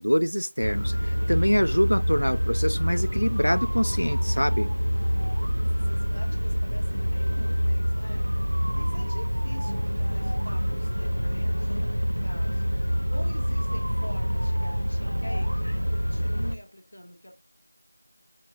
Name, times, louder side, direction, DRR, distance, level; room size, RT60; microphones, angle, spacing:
voice 1, 0.0-4.7, equal, 80° left, 0.3 m, -25 dB
sound 1, 0.6-16.6, equal, 70° right, 0.7 m, -26 dB
voice 2, 5.6-12.8 13.1-17.3, equal, 5° left, 0.6 m, -45 dB
10.0 x 4.5 x 2.7 m
figure-of-eight pair, 180°, 0 cm